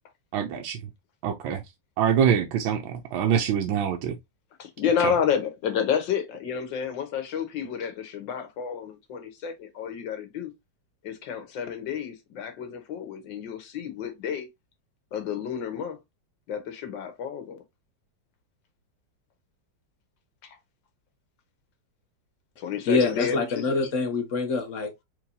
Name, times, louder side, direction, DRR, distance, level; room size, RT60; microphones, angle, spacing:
voice 1, 0.3-0.8 1.2-1.6 2.0-4.1, right 8 dB, 90° right, 1.4 m, -24 dB
voice 2, 4.6-10.5 11.0-14.5 15.1-16.0 16.5-17.6 20.4-20.6 22.6-23.8, left 7 dB, 80° left, 1.7 m, -30 dB
voice 3, 22.9-24.9, left 4 dB, 55° left, 0.9 m, -25 dB
4.6 x 3.4 x 2.7 m
omnidirectional pair, 2.0 m